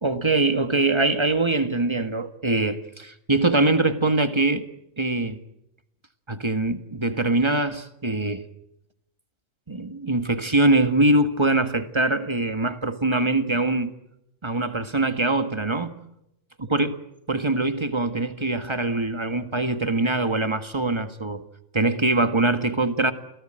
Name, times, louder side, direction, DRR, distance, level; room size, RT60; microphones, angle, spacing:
voice 1, 0.0-4.7 5.0-5.4 6.3-8.4 9.7-13.9 14.4-16.0 16.6-16.9 17.3-21.4 21.7-23.1, right 2 dB, 20° right, 1.6 m, -23 dB
29.0 x 18.0 x 9.0 m
omnidirectional pair, 1.3 m